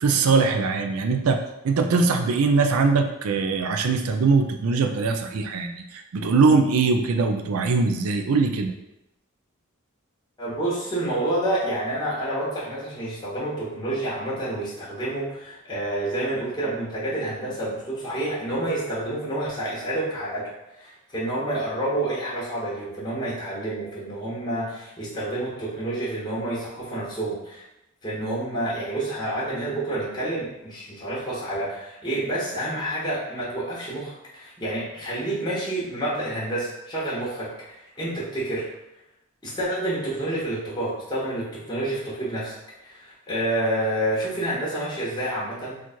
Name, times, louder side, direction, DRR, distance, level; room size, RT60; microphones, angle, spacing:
voice 1, 0.0-8.7, right 4 dB, 80° right, 5 dB, 0.4 m, -22 dB
voice 2, 10.4-20.4 20.8-27.6 28.0-38.7 39.4-42.6 42.8-45.8, right 1 dB, 20° left, -7 dB, 1.0 m, -29 dB
3.0 x 2.4 x 4.2 m, 0.87 s
head